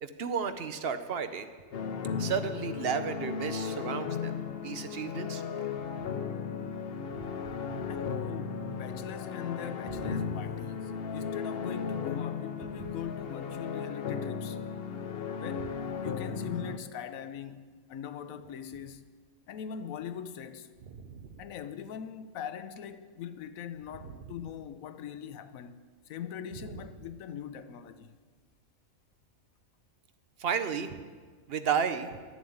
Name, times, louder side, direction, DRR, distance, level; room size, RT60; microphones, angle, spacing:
voice 1, 0.0-1.5 2.2-4.3 4.6-5.5 6.0-6.1 7.2-7.3 7.7-7.9 9.9-10.3 20.9-21.4 24.1-24.2 30.4-31.0 31.5-32.1, right 6 dB, 55° right, 0.8 m, -33 dB
sound 1, 1.7-16.8, left 6 dB, 55° left, 0.8 m, -36 dB
voice 2, 7.9-14.6 15.4-19.0 19.5-20.7 21.4-28.2, left 8 dB, 85° left, 1.1 m, -41 dB
11.0 x 7.2 x 8.7 m
omnidirectional pair, 1.4 m